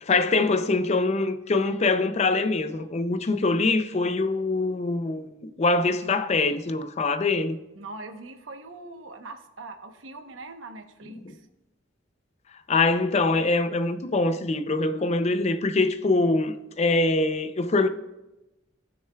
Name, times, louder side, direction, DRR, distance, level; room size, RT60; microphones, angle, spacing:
voice 1, 0.0-7.6 11.2-11.3 12.7-17.9, left 3 dB, 35° left, 0.5 m, -24 dB
voice 2, 7.8-11.5, right 3 dB, 85° right, 0.9 m, -42 dB
18.0 x 6.5 x 2.3 m
head